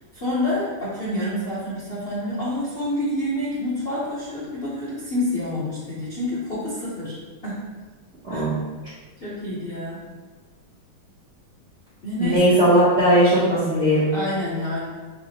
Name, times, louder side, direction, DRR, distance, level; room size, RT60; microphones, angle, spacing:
voice 1, 0.1-7.1 7.4-7.7 8.3-8.5 9.2-10.0 12.0-12.6 14.1-14.8, left 1 dB, 45° left, -10 dB, 0.7 m, -28 dB
voice 2, 8.2-8.6 12.2-14.1, equal, 50° right, -11 dB, 0.8 m, -18 dB
5.8 x 2.1 x 2.8 m, 1.3 s
omnidirectional pair, 2.3 m